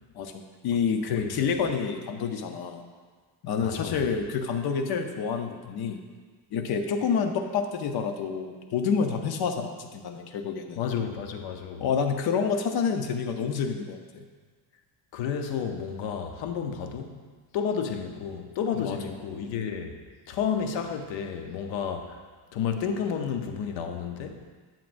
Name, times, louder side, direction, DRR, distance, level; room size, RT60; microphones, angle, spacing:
voice 1, 0.2-2.8 3.4-6.0 6.5-10.8 11.8-14.3 18.8-19.0, left 6 dB, 60° left, 5 dB, 0.8 m, -28 dB
voice 2, 3.6-4.0 10.8-11.8 15.1-17.2 17.5-20.0 20.3-22.2 22.5-24.4, left 7 dB, 85° left, 5 dB, 0.9 m, -31 dB
9.3 x 7.4 x 2.6 m, 1.5 s
cardioid pair, 145°, 44 cm